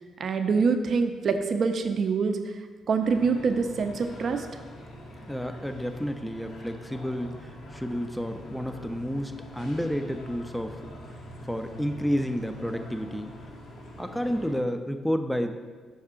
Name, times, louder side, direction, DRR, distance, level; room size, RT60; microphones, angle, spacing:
voice 1, 0.2-2.6 2.9-4.5, right 5 dB, 55° right, 7 dB, 0.5 m, -25 dB
sound 1, 3.0-14.5, equal, 70° left, 1.1 m, -44 dB
voice 2, 5.3-10.8 11.5-13.3 14.0-15.5, equal, ahead, 7 dB, 0.4 m, -30 dB
5.5 x 4.8 x 3.6 m, 1.4 s
cardioid pair, 90°, 0 cm